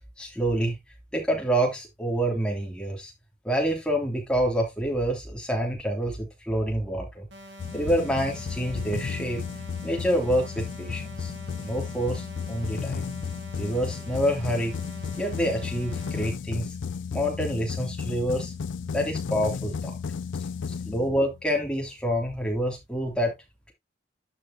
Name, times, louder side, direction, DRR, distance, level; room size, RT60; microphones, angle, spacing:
voice 1, 0.2-0.7 1.1-3.1 3.4-7.3 7.7-9.4 9.8-11.3 11.6-13.1 13.6-14.8 15.2-16.7 17.1-18.5 18.9-20.0 20.8-23.3, equal, 5° left, 3.1 m, -27 dB
sound 1, 7.3-16.3, right 1 dB, 75° right, 2.6 m, -46 dB
sound 2, 7.6-21.5, left 6 dB, 75° left, 0.4 m, -34 dB
11.5 x 5.1 x 2.9 m
head